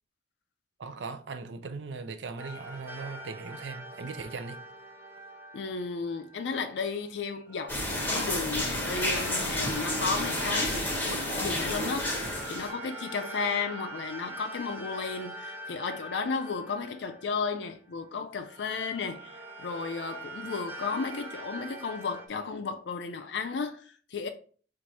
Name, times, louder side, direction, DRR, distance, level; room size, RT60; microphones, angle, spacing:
voice 1, 0.8-4.6, right 4 dB, 85° right, 0.5 m, -39 dB
sound 1, 2.4-6.6 7.5-17.9 18.4-22.3, right 2 dB, 15° right, 0.6 m, -43 dB
voice 2, 5.5-24.3, left 4 dB, 75° left, 0.4 m, -34 dB
sound 2, 7.7-12.7, left 1 dB, 10° left, 1.1 m, -30 dB
4.6 x 2.5 x 4.1 m
head